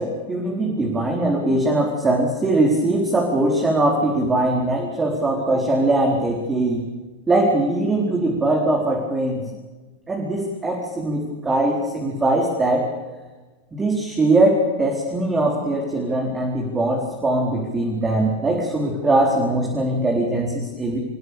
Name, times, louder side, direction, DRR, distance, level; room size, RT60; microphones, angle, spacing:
voice 1, 0.0-6.8 7.3-9.4 10.1-12.9 13.7-21.0, right 2 dB, 15° right, -1 dB, 4.3 m, -21 dB
28.5 x 15.5 x 8.6 m, 1.2 s
figure-of-eight pair, 90°, 0 cm